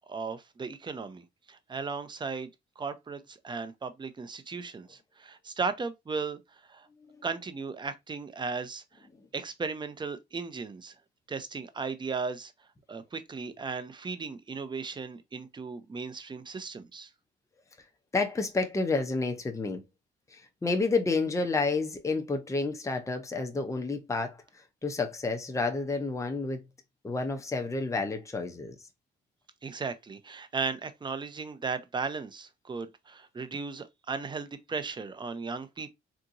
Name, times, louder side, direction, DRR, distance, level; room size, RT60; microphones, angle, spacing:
voice 1, 0.1-2.5 2.8-6.9 7.2-8.8 9.3-10.9 11.3-12.5 12.9-17.1 29.6-35.9, right 4 dB, 25° right, 0.6 m, -36 dB
voice 2, 18.1-19.8 20.3-24.4 24.8-26.6 27.0-28.8, left 3 dB, 15° left, 0.7 m, -30 dB
3.6 x 2.9 x 2.6 m
cardioid pair, 90°, 20 cm